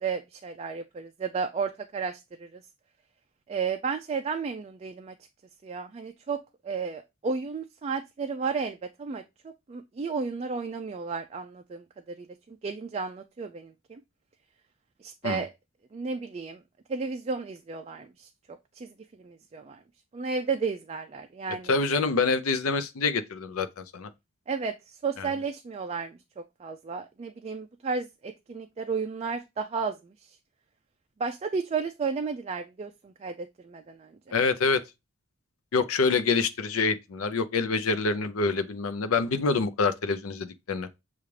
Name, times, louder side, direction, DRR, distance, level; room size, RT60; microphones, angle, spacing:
voice 1, 0.0-2.6 3.5-5.1 5.6-9.2 9.7-14.0 15.0-15.5 15.9-16.6 16.9-19.8 20.1-21.7 24.5-30.4 31.2-34.3, right 5 dB, 30° right, 0.3 m, -33 dB
voice 2, 21.7-24.1 25.2-25.3 34.3-34.8 35.7-40.9, left 4 dB, 90° left, 0.6 m, -26 dB
6.9 x 2.4 x 3.2 m
head